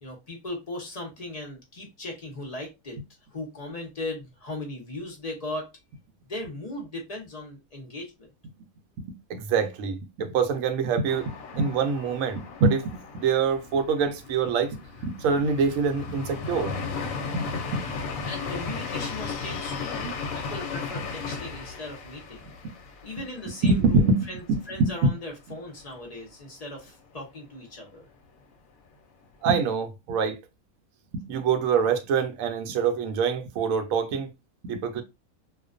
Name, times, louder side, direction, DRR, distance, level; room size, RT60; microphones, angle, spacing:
voice 1, 0.0-3.0 3.3-5.7 6.3-8.3 18.2-22.5 23.0-28.1, left 2 dB, 45° left, 0.5 m, -38 dB
voice 2, 9.0-12.9 13.1-16.7 17.3-17.8 20.0-20.1 23.6-24.2 24.5-25.1 29.4-30.4 31.1-34.3 34.6-35.0, right 5 dB, 70° right, 0.9 m, -25 dB
sound 1, 11.1-24.8 25.1-25.2 25.6-26.2, left 4 dB, 70° left, 0.9 m, -36 dB
2.4 x 2.2 x 2.4 m
omnidirectional pair, 1.6 m